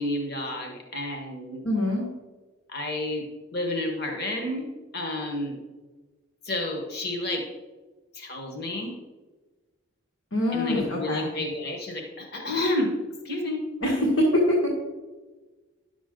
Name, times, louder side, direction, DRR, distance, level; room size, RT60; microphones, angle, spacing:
voice 1, 0.0-1.7 2.7-4.6 4.9-5.6 6.4-7.4 8.1-8.9 10.5-12.9 13.2-13.6, left 1 dB, 50° left, 2 dB, 1.4 m, -30 dB
voice 2, 1.6-2.1 10.3-11.3 13.8-14.2 14.6-14.7, left 1 dB, 70° left, -3 dB, 1.9 m, -25 dB
10.5 x 7.1 x 3.8 m, 1.2 s
head